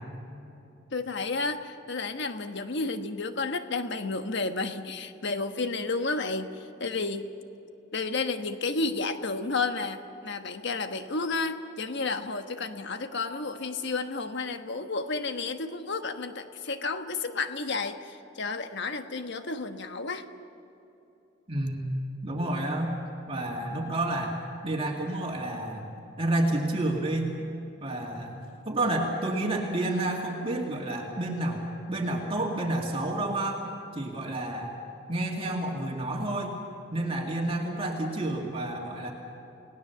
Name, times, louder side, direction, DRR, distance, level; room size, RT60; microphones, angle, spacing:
voice 1, 0.9-7.3 7.9-20.3, left 3 dB, 60° left, 7 dB, 1.3 m, -31 dB
voice 2, 21.5-22.9 23.3-24.4 24.6-25.9 26.2-27.3 27.8-31.6 31.9-33.6 33.9-34.7 35.1-36.6 36.9-39.1, right 1 dB, 30° right, 0 dB, 2.2 m, -30 dB
30.0 x 18.0 x 7.0 m, 2.9 s
head